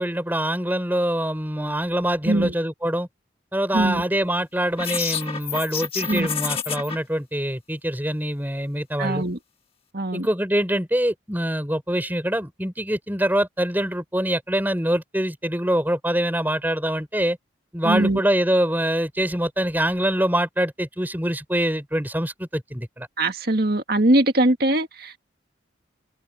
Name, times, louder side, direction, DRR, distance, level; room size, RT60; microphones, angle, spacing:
voice 1, 0.0-3.1 3.5-9.2 10.1-17.4 17.7-23.1, right 1 dB, 10° right, 5.5 m, -24 dB
sound 1, 4.8-7.0, left 7 dB, 30° left, 2.0 m, -28 dB
voice 2, 9.0-9.4 9.9-10.3 17.8-18.2 23.2-25.2, right 1 dB, 50° right, 2.1 m, -21 dB
head